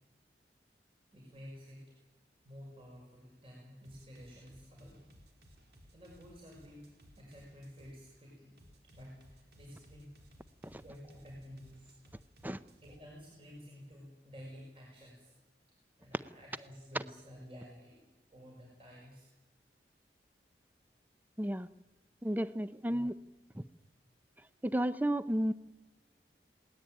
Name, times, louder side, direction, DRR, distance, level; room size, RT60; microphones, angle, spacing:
voice 1, 1.1-1.9 2.4-5.0 5.7-6.9 7.2-10.1 10.8-11.9 12.8-15.3 15.7-18.0 18.3-19.3 19.9-20.0 23.8-23.9, equal, 30° right, -2 dB, 5.9 m, -52 dB
sound 1, 3.8-8.0 8.6-13.0, equal, 65° right, 4.5 m, -60 dB
voice 2, 22.2-23.1 23.6-23.7 24.6-25.5, right 1 dB, 10° right, 14 dB, 0.6 m, -32 dB
21.0 x 18.5 x 9.1 m, 1.1 s
head